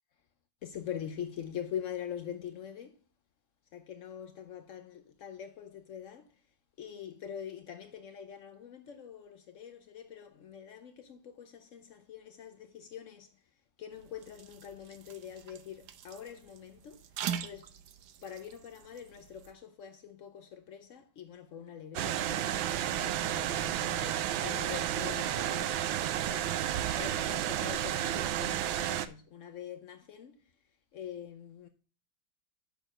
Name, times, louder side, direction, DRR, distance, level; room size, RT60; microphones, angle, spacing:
voice 1, 0.6-3.0 3.7-6.5 6.8-13.4 13.8-17.0 17.4-17.8 18.2-26.0 26.2-30.5 30.9-31.7, left 9 dB, 75° left, 0.7 m, -44 dB
sound 1, 13.9-19.5, right 9 dB, 65° right, 1.2 m, -43 dB
sound 2, 22.0-29.1, right 12 dB, 85° right, 1.4 m, -32 dB
6.8 x 6.3 x 4.8 m
omnidirectional pair, 2.1 m